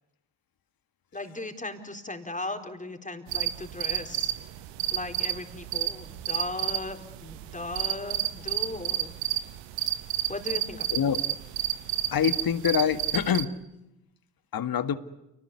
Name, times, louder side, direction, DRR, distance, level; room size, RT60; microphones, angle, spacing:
voice 1, 1.1-4.3 4.9-9.1 10.3-11.0, left 2 dB, 15° left, 5 dB, 4.2 m, -37 dB
sound 1, 3.3-13.4, right 13 dB, 75° right, 1.3 m, -31 dB
voice 2, 12.1-13.6 14.5-15.0, left 8 dB, 50° left, 11 dB, 1.8 m, -25 dB
29.0 x 19.5 x 9.8 m, 0.93 s
hypercardioid pair, 45°, 44 cm